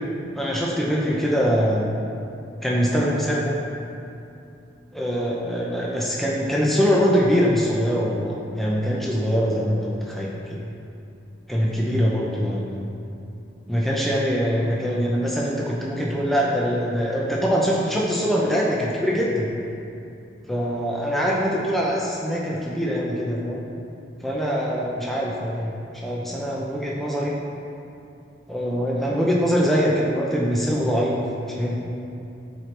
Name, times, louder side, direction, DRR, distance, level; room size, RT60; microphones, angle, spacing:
voice 1, 0.3-2.0 2.6-3.5 4.9-10.6 11.5-12.9 13.7-19.5 20.5-23.6 24.2-27.3 28.5-31.2 31.5-31.8, equal, ahead, -4 dB, 0.6 m, -23 dB
12.5 x 4.6 x 3.3 m, 2.7 s
head